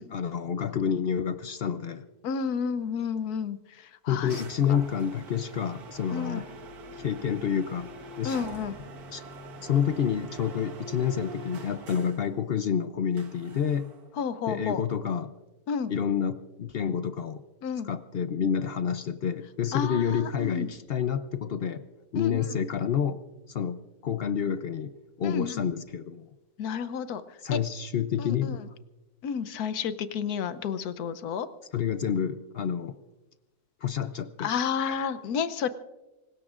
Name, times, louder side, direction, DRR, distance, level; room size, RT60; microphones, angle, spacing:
voice 1, 0.0-2.0 4.1-6.4 7.0-8.4 9.1-9.2 9.6-13.9 14.5-15.3 15.9-17.4 17.9-21.9 22.1-23.2 23.5-24.9 25.2-26.3 27.4-28.6 31.7-33.0 33.8-34.5 34.9-35.0, left 8 dB, 60° left, 11 dB, 0.6 m, -29 dB
voice 2, 2.2-4.4 4.7-4.8 6.1-6.4 8.2-8.8 14.2-14.8 15.7-15.9 17.6-17.9 19.7-20.7 22.1-22.4 25.2-25.6 26.6-27.2 27.5-27.6 28.2-28.6 29.2-31.5 34.4-35.7, left 6 dB, 90° left, 12 dB, 1.3 m, -31 dB
sound 1, 4.3-12.3 13.2-14.1, right 2 dB, 90° right, 1.8 m, -44 dB
25.0 x 19.5 x 2.5 m, 1.1 s
omnidirectional pair, 1.6 m